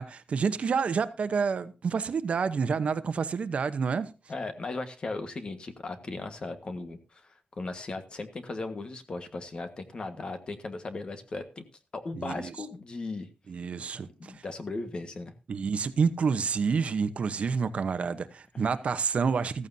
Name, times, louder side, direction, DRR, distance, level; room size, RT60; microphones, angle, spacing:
voice 1, 0.0-4.1 12.2-12.5 13.5-14.3 15.5-19.7, right 5 dB, 55° right, 0.9 m, -28 dB
voice 2, 4.3-11.6 11.9-13.3 14.2-15.3, left 3 dB, 40° left, 1.5 m, -37 dB
14.5 x 14.5 x 2.8 m
wide cardioid pair, 165°, 3 cm